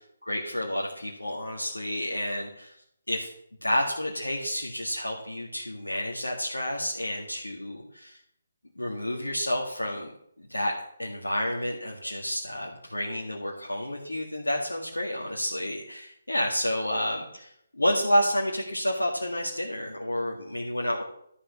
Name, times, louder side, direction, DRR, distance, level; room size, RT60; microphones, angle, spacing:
voice 1, 0.0-2.8 3.1-3.3 3.6-8.2 8.8-10.1 10.4-10.7 11.0-21.0, equal, 90° left, -2 dB, 1.7 m, -30 dB
12.5 x 5.2 x 6.8 m, 0.71 s
figure-of-eight pair, 145°, 0 cm